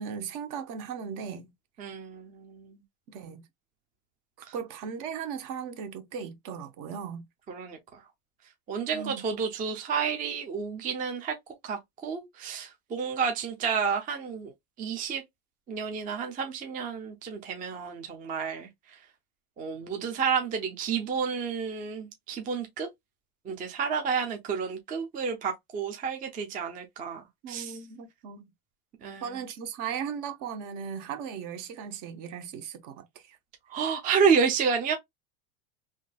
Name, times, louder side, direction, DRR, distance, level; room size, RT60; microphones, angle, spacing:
voice 1, 0.0-1.5 3.1-3.4 4.5-7.2 8.9-9.2 27.4-28.4 29.2-33.4, right 7 dB, 45° right, 0.8 m, -37 dB
voice 2, 1.8-2.8 4.5-4.6 7.5-8.0 8.7-11.4 11.6-14.5 14.8-15.2 15.7-19.0 19.6-22.9 23.4-27.8 29.0-29.4 33.7-34.9, right 6 dB, 20° right, 0.5 m, -30 dB
3.7 x 2.7 x 2.2 m
supercardioid pair, 135°, 43 cm